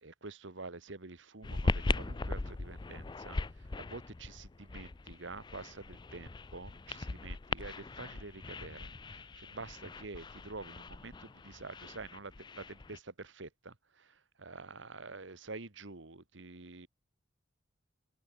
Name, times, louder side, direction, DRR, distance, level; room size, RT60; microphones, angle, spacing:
voice 1, 0.0-16.9, right 3 dB, 70° right, 1.7 m, -48 dB
sound 1, 1.4-13.0, left 3 dB, 25° left, 0.4 m, -39 dB
open air
head